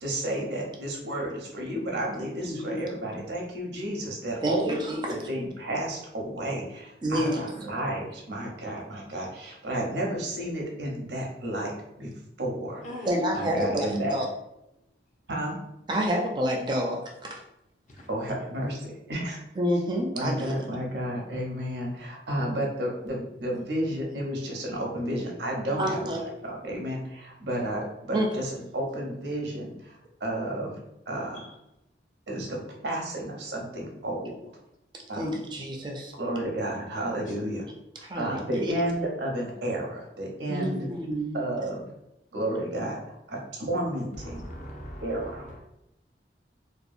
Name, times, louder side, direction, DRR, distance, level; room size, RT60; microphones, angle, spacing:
voice 1, 0.0-11.7 12.0-12.1 12.4-12.8 13.3-14.2 15.3-15.6 18.1-19.4 20.1-31.5 32.3-34.5 35.1-35.3 36.2-37.6 38.2-40.9 41.3-41.9 42.3-44.4 45.0-45.4, right 1 dB, 80° right, -1 dB, 0.6 m, -32 dB
voice 2, 2.4-2.8 4.4-5.3 7.0-7.4 13.1-14.3 15.9-17.4 19.6-20.6 25.8-26.2 28.1-28.3 35.1-36.1 38.0-38.7 40.5-41.4, equal, 25° right, 0 dB, 0.4 m, -28 dB
voice 3, 12.8-13.2 17.9-18.1 31.3-31.6 37.3-37.4 44.2-45.6, equal, 45° left, -2 dB, 0.6 m, -41 dB
2.7 x 2.2 x 2.4 m, 0.85 s
head